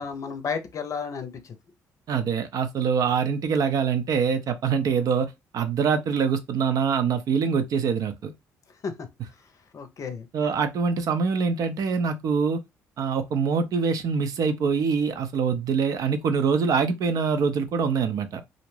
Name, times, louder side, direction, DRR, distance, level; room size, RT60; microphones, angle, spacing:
voice 1, 0.0-1.5 8.8-8.9 9.7-10.3, left 5 dB, 50° left, 0.6 m, -32 dB
voice 2, 2.1-8.3 10.3-12.6 13.0-18.4, right 6 dB, 55° right, 0.5 m, -24 dB
2.5 x 2.1 x 3.1 m
hypercardioid pair, 55°, 7 cm